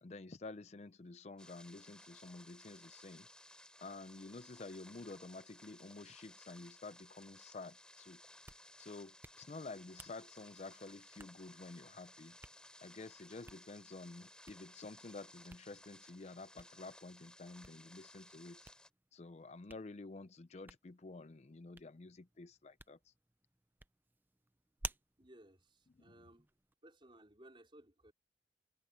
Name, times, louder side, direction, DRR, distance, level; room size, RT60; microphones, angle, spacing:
voice 1, 0.0-3.3 3.8-8.2 8.8-12.4 12.8-18.7 19.1-23.1 26.2-26.3, left 3 dB, 40° left, 0.5 m, -50 dB
sound 1, 1.4-18.9, left 1 dB, 5° left, 3.3 m, -59 dB
Hands, 8.2-26.7, right 3 dB, 10° right, 0.5 m, -56 dB
voice 2, 25.2-26.5 26.8-28.1, right 1 dB, 30° right, 4.4 m, -60 dB
head